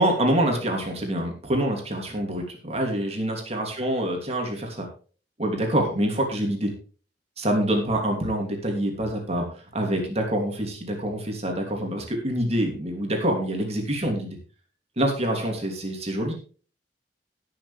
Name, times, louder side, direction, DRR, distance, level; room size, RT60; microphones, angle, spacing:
voice 1, 0.0-4.9 5.4-6.7 7.4-9.5 9.7-14.4 15.0-16.3, right 1 dB, 35° right, 2 dB, 2.9 m, -26 dB
18.5 x 6.7 x 3.4 m, 0.39 s
head